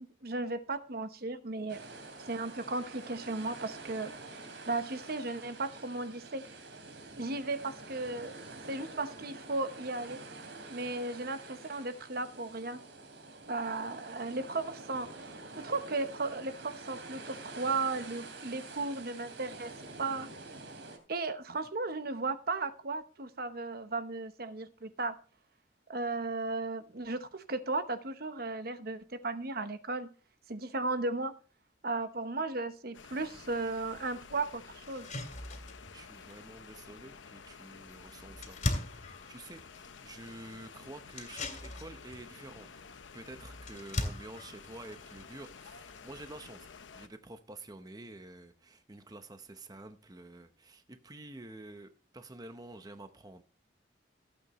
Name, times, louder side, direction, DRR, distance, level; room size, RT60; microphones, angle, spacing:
voice 1, 0.0-1.9 2.3-4.1 4.7-6.4 7.2-10.2 10.7-12.8 13.5-15.3 15.6-19.7 20.0-20.3 21.1-25.2 25.9-30.1 30.5-31.3 31.8-35.1, right 3 dB, 55° right, 1.0 m, -35 dB
sound 1, 1.7-21.0, right 3 dB, 75° right, 3.2 m, -47 dB
sound 2, 32.9-47.1, left 5 dB, 85° left, 0.9 m, -51 dB
sound 3, 33.8-33.9 34.4-34.5 34.8-46.5, left 1 dB, 40° left, 2.7 m, -42 dB
voice 2, 35.8-38.6 39.3-42.7 43.1-46.7 46.9-53.4, right 2 dB, 20° right, 0.8 m, -49 dB
16.0 x 8.5 x 3.1 m
head